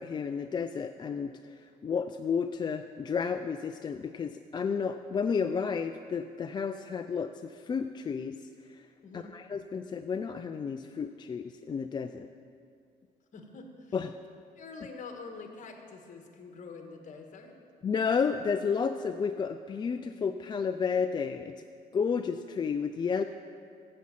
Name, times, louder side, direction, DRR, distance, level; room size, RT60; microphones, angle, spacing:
voice 1, 0.0-1.3 1.8-8.4 8.7-8.8 9.1-12.3 13.9-14.1 17.8-21.5 21.9-23.2, left 6 dB, 25° left, 8 dB, 0.3 m, -31 dB
voice 2, 9.0-9.3 13.3-14.0 14.6-17.5, left 4 dB, 50° left, 4 dB, 1.5 m, -45 dB
9.6 x 7.5 x 7.4 m, 2.3 s
cardioid pair, 110°, 17 cm